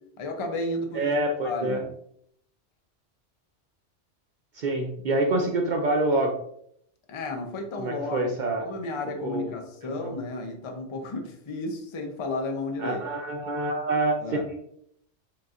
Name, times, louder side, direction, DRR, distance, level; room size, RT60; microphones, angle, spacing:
voice 1, 0.2-1.1 1.4-1.9 7.1-8.3 8.6-13.0 14.2-14.5, left 2 dB, 35° left, 3 dB, 0.5 m, -33 dB
voice 2, 0.9-1.8 4.6-6.3 7.8-8.7 9.2-9.5 9.8-10.2 12.8-14.6, right 2 dB, 60° right, 2 dB, 0.5 m, -26 dB
4.6 x 3.0 x 2.5 m, 0.70 s
omnidirectional pair, 1.2 m